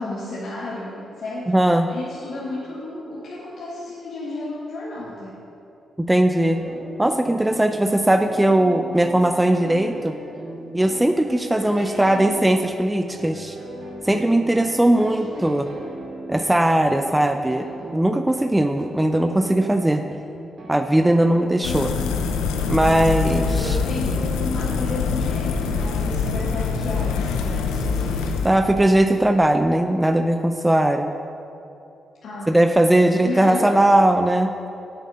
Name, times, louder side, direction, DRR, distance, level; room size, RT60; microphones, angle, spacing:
voice 1, 0.0-1.6 1.9-5.4 11.5-12.3 14.9-15.8 21.6-22.3 23.6-28.5 32.2-32.7 33.2-33.8, left 2 dB, 70° left, -6 dB, 1.6 m, -33 dB
voice 2, 1.5-1.9 6.0-6.6 7.0-10.1 10.7-13.6 14.0-15.7 16.3-17.7 17.9-20.0 20.7-21.9 22.7-23.8 28.4-31.1 32.5-34.5, right 1 dB, 15° right, 6 dB, 0.6 m, -19 dB
sound 1, 6.6-21.5, right 1 dB, 60° right, 2.3 m, -38 dB
sound 2, 21.6-28.5, left 5 dB, 85° left, 0.6 m, -24 dB
9.0 x 8.4 x 5.6 m, 2.8 s
hypercardioid pair, 40°, 0 cm